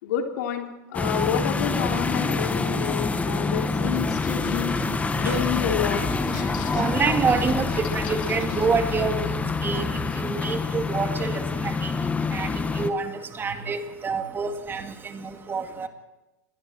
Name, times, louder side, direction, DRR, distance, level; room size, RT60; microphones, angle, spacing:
voice 1, 0.0-4.8 5.1-6.1, left 9 dB, 70° left, 3 dB, 3.5 m, -29 dB
sound 1, 0.9-12.9, left 3 dB, 15° left, 1.5 m, -26 dB
sound 2, 3.9-11.5, left 11 dB, 50° left, 1.4 m, -40 dB
voice 2, 4.7-5.4 5.8-15.9, right 5 dB, 25° right, 6 dB, 2.3 m, -28 dB
28.5 x 21.5 x 4.5 m, 1.0 s
hypercardioid pair, 115°, 9 cm